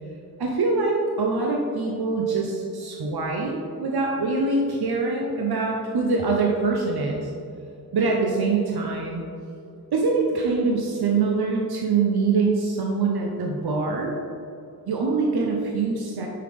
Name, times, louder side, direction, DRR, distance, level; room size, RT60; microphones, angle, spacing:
voice 1, 0.4-7.3 7.9-9.2 9.9-14.1 14.9-16.3, right 4 dB, 80° right, 0 dB, 0.7 m, -24 dB
6.4 x 5.8 x 3.4 m, 2.5 s
cardioid pair, 45°, 38 cm